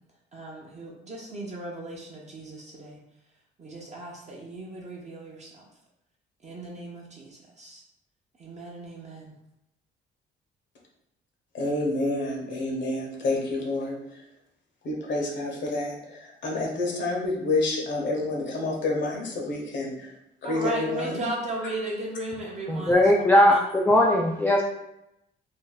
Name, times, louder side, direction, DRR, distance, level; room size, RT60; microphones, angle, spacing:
voice 1, 0.3-3.0 3.6-5.6 6.4-7.8 8.4-9.3 20.4-23.7, right 2 dB, 35° right, -3 dB, 0.7 m, -36 dB
voice 2, 11.5-14.0 14.8-20.1 20.4-21.3, left 2 dB, 65° left, -1 dB, 0.9 m, -28 dB
voice 3, 22.7-24.6, left 1 dB, 10° left, -2 dB, 0.3 m, -19 dB
2.6 x 2.1 x 3.8 m, 0.85 s
cardioid pair, 90°, 20 cm